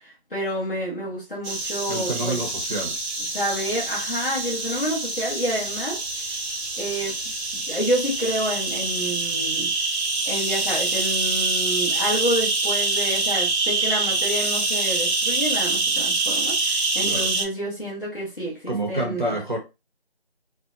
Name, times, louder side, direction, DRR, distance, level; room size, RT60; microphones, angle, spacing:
voice 1, 0.0-2.4 3.3-6.4 6.8-7.2 7.5-9.7 10.3-19.4, equal, 50° left, 1.0 m, -29 dB
sound 1, 1.4-17.4, right 3 dB, 85° right, 0.8 m, -25 dB
voice 2, 1.9-3.0 17.0-17.3 18.7-19.6, right 1 dB, 45° right, 0.6 m, -28 dB
2.7 x 2.1 x 2.4 m
figure-of-eight pair, 180°, 33 cm